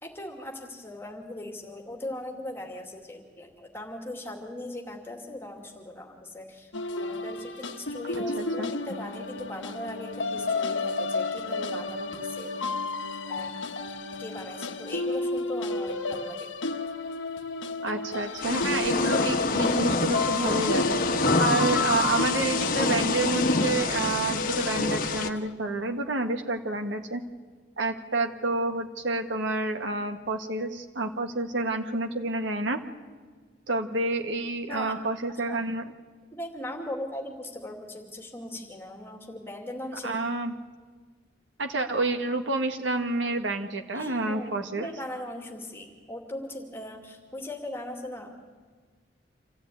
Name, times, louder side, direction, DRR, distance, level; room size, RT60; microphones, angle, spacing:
voice 1, 0.0-6.7 7.0-12.8 13.3-13.6 14.2-16.5 34.7-35.0 35.5-35.6 36.3-40.2 43.9-48.3, left 1 dB, 10° left, 1 dB, 2.6 m, -39 dB
sound 1, 6.7-25.5, left 3 dB, 80° left, 1.1 m, -32 dB
voice 2, 8.1-8.7 17.8-21.0 21.4-27.2 27.8-32.8 33.7-35.8 40.0-40.5 41.6-44.9, right 2 dB, 75° right, 4 dB, 1.8 m, -29 dB
Thunder / Rain, 18.4-25.3, left 3 dB, 45° left, 1.2 m, -26 dB
26.5 x 14.5 x 9.4 m, 1.5 s
head